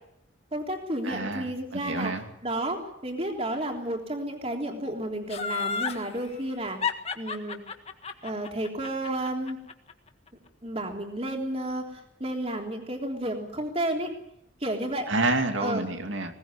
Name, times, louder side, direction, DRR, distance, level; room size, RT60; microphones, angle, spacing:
voice 1, 0.5-2.1 2.4-6.8 7.2-7.6 8.2-9.6 10.6-11.8 12.2-14.1 14.6-15.1 15.6-15.8, right 1 dB, 30° right, 3 dB, 3.5 m, -31 dB
voice 2, 1.0-2.3 15.1-16.3, right 2 dB, 80° right, 6 dB, 2.6 m, -28 dB
Laughter, 5.3-6.0 6.8-9.9 10.3-10.4, left 6 dB, 30° left, 1.7 m, -31 dB
20.5 x 18.5 x 9.9 m, 0.78 s
head